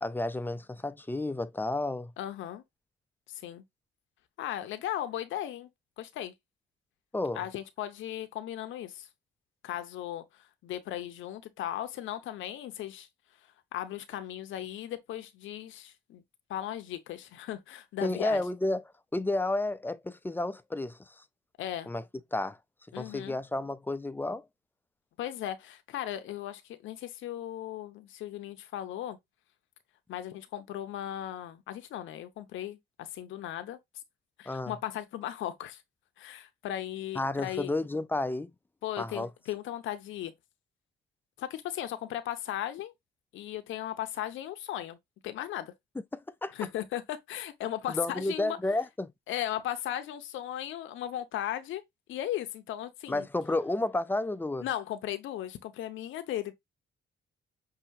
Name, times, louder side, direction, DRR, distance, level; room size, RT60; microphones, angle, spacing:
voice 1, 0.0-2.1 7.1-7.4 18.0-18.8 19.1-21.0 21.9-22.0 22.3-22.6 23.0-24.4 34.5-34.7 37.2-38.5 39.0-39.3 46.1-46.5 47.9-49.1 53.1-54.7, left 2 dB, 10° left, 0.4 m, -31 dB
voice 2, 2.2-2.6 3.3-3.6 4.4-5.7 6.0-6.3 7.3-9.1 9.6-13.1 13.7-16.2 16.5-18.4 21.6-21.9 22.9-23.4 25.2-29.2 30.1-33.8 34.4-35.8 36.2-37.7 38.8-40.3 41.4-42.9 43.3-45.0 45.2-45.7 46.5-48.6 49.3-51.8 52.1-53.3 54.6-56.5, left 12 dB, 80° left, 0.7 m, -37 dB
5.7 x 2.7 x 2.6 m
cardioid pair, 90°, 20 cm